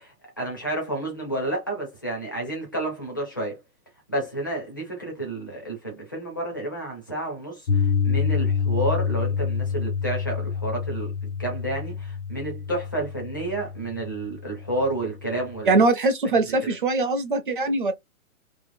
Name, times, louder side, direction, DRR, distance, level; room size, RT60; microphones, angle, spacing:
voice 1, 0.0-3.6 4.1-15.8, right 2 dB, 15° left, 0.5 m, -30 dB
Piano, 7.7-15.8, left 6 dB, 60° left, 0.6 m, -27 dB
voice 2, 15.7-17.9, right 3 dB, 40° right, 0.6 m, -22 dB
2.9 x 2.4 x 2.6 m
hypercardioid pair, 180°, 41 cm